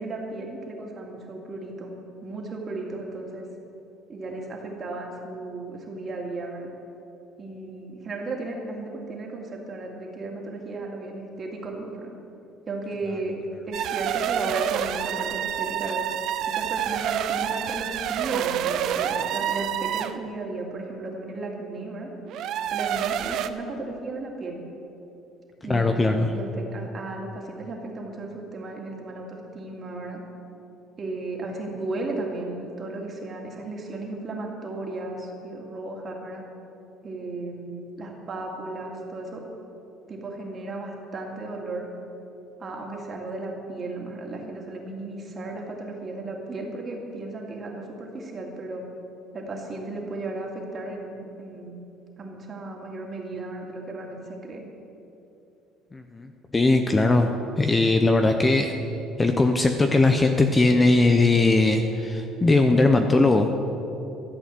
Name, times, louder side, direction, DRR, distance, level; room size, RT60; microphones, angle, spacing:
voice 1, 0.0-1.9 2.2-3.5 4.1-6.7 7.4-12.1 12.7-16.0 16.5-22.1 22.7-24.6 25.6-30.2 31.0-36.4 37.0-39.4 40.1-41.9 42.6-48.9 49.3-51.8 52.2-54.6, right 2 dB, 30° right, 0 dB, 2.3 m, -35 dB
sound 1, 13.7-20.2 22.3-23.5, right 10 dB, 60° right, 0.6 m, -28 dB
voice 2, 25.7-26.3 55.9-58.7 59.2-63.5, left 2 dB, 15° left, 5 dB, 0.6 m, -20 dB
13.5 x 8.3 x 7.5 m, 2.8 s
cardioid pair, 140°, 0 cm